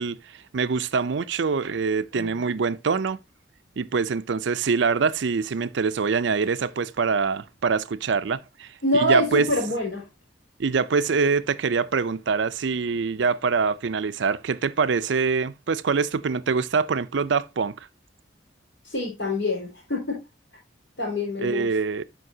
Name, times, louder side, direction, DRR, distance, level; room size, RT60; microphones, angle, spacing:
voice 1, 0.0-3.2 3.8-9.5 10.6-17.7 21.4-22.0, right 5 dB, 75° right, 0.5 m, -24 dB
voice 2, 8.8-10.0 18.8-20.2 21.0-21.7, left 1 dB, 60° left, 4.2 m, -25 dB
12.5 x 5.2 x 2.7 m
head